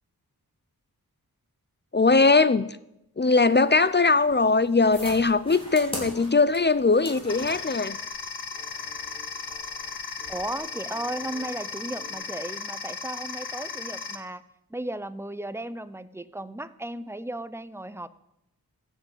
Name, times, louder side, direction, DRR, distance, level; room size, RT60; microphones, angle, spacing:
voice 1, 1.9-2.7 3.2-8.0, left 3 dB, 30° left, 0.6 m, -20 dB
sound 1, 3.4-12.1, equal, 15° left, 4.4 m, -43 dB
sound 2, 7.3-14.2, left 5 dB, 90° left, 1.2 m, -36 dB
voice 2, 10.3-14.4 14.7-18.1, right 1 dB, 5° right, 0.7 m, -35 dB
14.5 x 7.9 x 8.1 m
wide cardioid pair, 65°, 37 cm